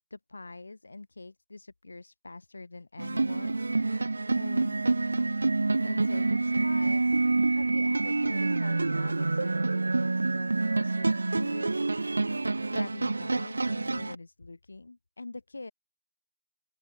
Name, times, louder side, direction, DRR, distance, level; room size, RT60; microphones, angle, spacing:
voice 1, 0.1-3.6 4.3-4.9 5.8-7.2 7.5-12.3 12.6-15.7, left 3 dB, 75° left, 4.0 m, -44 dB
sound 1, 3.0-14.1, right 3 dB, 75° right, 0.4 m, -27 dB
open air
figure-of-eight pair, 160°, 0 cm